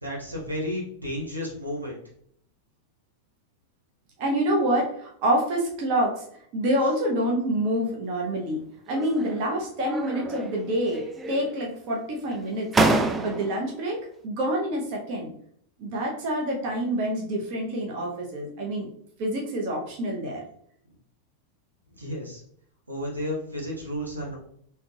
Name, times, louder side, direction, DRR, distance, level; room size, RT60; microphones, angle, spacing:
voice 1, 0.0-2.0 22.0-22.4 22.9-24.4, equal, 80° right, -3 dB, 1.0 m, -32 dB
voice 2, 4.2-6.2 6.5-12.7 13.2-14.0 14.2-15.3 15.8-18.9 19.2-20.4, right 1 dB, 45° right, -1 dB, 0.7 m, -27 dB
sound 1, 8.9-9.5 9.8-10.6 10.9-11.7 12.3-12.4 12.7-13.7, right 2 dB, 15° right, 0.3 m, -27 dB
3.7 x 2.8 x 2.3 m, 0.67 s
figure-of-eight pair, 90°, 0 cm